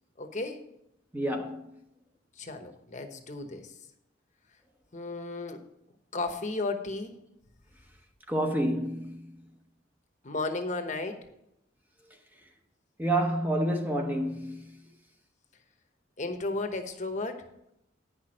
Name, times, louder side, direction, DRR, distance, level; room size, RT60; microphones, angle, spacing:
voice 1, 0.2-0.6 2.4-3.8 4.9-5.6 6.1-7.2 10.2-11.3 16.2-17.5, left 3 dB, 40° left, 1.0 m, -34 dB
voice 2, 1.1-1.7 8.3-9.3 13.0-14.7, right 1 dB, 10° right, 0.8 m, -29 dB
9.7 x 6.0 x 6.2 m
head